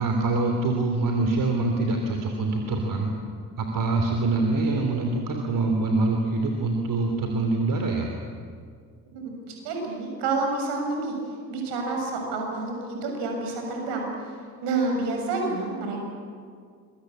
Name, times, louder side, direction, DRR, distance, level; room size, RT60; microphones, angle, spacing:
voice 1, 0.0-3.1 3.6-8.1, right 3 dB, 45° right, 3 dB, 3.2 m, -25 dB
voice 2, 9.1-11.2 11.5-14.3 14.6-16.0, right 3 dB, 60° right, 2 dB, 7.0 m, -29 dB
25.5 x 22.0 x 8.7 m, 2.1 s
figure-of-eight pair, 50°, 47 cm